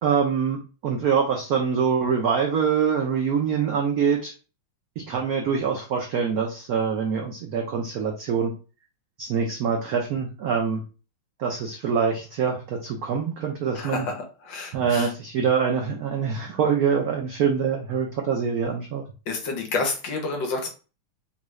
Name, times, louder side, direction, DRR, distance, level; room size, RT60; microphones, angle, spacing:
voice 1, 0.0-4.3 5.1-8.5 9.2-10.8 11.4-14.1 14.7-19.0, right 6 dB, 85° right, 1 dB, 0.8 m, -24 dB
voice 2, 13.7-14.2 14.4-15.1 19.3-20.7, left 3 dB, 65° left, 3 dB, 1.4 m, -29 dB
3.8 x 2.2 x 3.1 m, 0.34 s
omnidirectional pair, 2.3 m